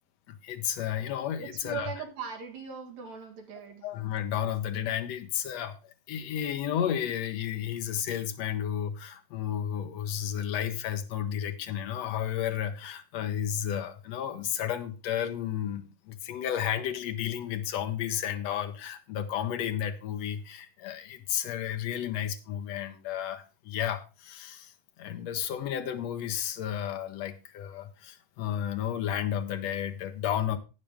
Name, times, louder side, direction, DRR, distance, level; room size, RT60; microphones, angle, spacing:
voice 1, 0.3-1.9 3.8-30.6, left 10 dB, 65° left, 1.8 m, -32 dB
voice 2, 1.4-3.9, right 7 dB, 60° right, 3.0 m, -39 dB
12.0 x 9.2 x 3.6 m
omnidirectional pair, 3.9 m